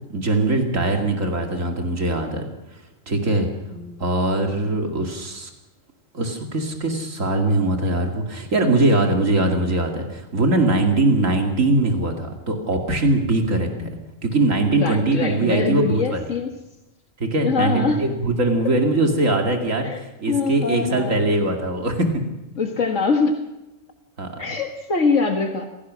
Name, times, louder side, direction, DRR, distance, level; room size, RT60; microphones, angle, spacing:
voice 1, 0.1-2.5 3.1-3.5 4.0-5.5 6.1-13.9 14.2-16.2 17.2-22.1 24.2-24.4, right 2 dB, 80° right, 3 dB, 2.7 m, -21 dB
voice 2, 3.7-4.2 10.7-10.9 11.2-11.3 13.8-14.0 14.6-16.6 17.4-18.0 19.8-21.3 22.6-23.5 24.4-25.6, left 4 dB, 75° left, 4 dB, 2.0 m, -24 dB
26.5 x 17.0 x 6.3 m, 1.0 s
omnidirectional pair, 1.3 m